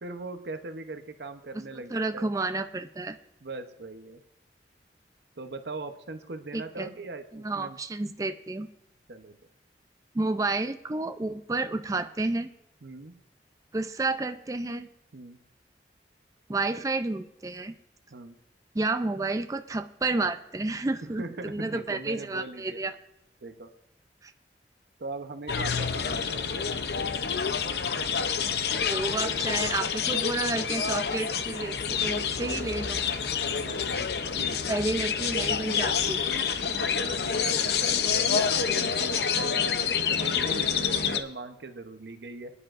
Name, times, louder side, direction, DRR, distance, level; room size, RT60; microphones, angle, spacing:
voice 1, 0.0-2.3 3.4-4.2 5.4-7.8 9.1-9.4 12.8-13.2 15.1-15.4 18.1-18.3 21.0-22.8 23.4-23.7 25.0-26.8 33.6-34.7 36.8-42.5, right 3 dB, 70° right, 8 dB, 0.8 m, -40 dB
voice 2, 1.7-3.2 6.5-6.9 7.3-8.7 10.1-12.5 13.7-14.9 16.5-17.7 18.7-22.9 24.2-24.3 28.9-33.0 34.7-36.2, right 2 dB, 20° right, 9 dB, 0.4 m, -30 dB
sound 1, 25.5-41.2, left 6 dB, 65° left, 0.6 m, -28 dB
23.0 x 9.9 x 2.5 m, 0.81 s
head